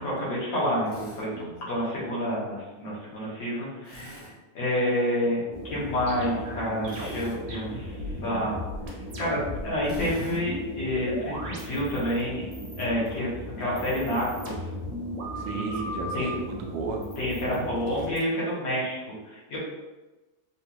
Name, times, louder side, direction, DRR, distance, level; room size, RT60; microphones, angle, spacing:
voice 1, 0.0-1.3 1.7-4.3 4.5-8.6 9.2-12.4 12.8-13.3 13.6-14.5 15.4-15.8 16.1-16.3 17.2-19.6, equal, 75° left, -7 dB, 2.0 m, -29 dB
Drill, 0.9-1.2 3.8-4.3 6.8-7.4 9.8-10.4, equal, 20° left, 0.8 m, -45 dB
sound 1, 5.5-18.1, equal, 55° left, 1.1 m, -39 dB
sound 2, 5.7-9.6 9.9-12.2 12.5-13.2 13.6-16.3 17.0-18.2, equal, 55° right, 1.1 m, -38 dB
voice 2, 15.3-17.0 17.5-18.0, right 4 dB, 80° right, 2 dB, 1.2 m, -35 dB
4.2 x 2.4 x 2.9 m, 1.1 s
omnidirectional pair, 2.0 m